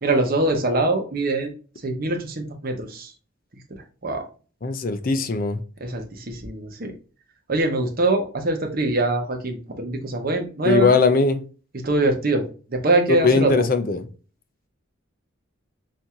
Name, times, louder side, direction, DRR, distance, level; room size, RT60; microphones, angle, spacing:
voice 1, 0.0-1.5 1.8-3.1 3.7-4.3 5.8-6.9 7.5-11.0 11.8-13.6, right 2 dB, 45° right, 0.9 m, -23 dB
voice 2, 4.6-5.6 10.6-11.4 13.2-14.0, left 4 dB, 45° left, 0.5 m, -19 dB
4.3 x 2.7 x 3.6 m
head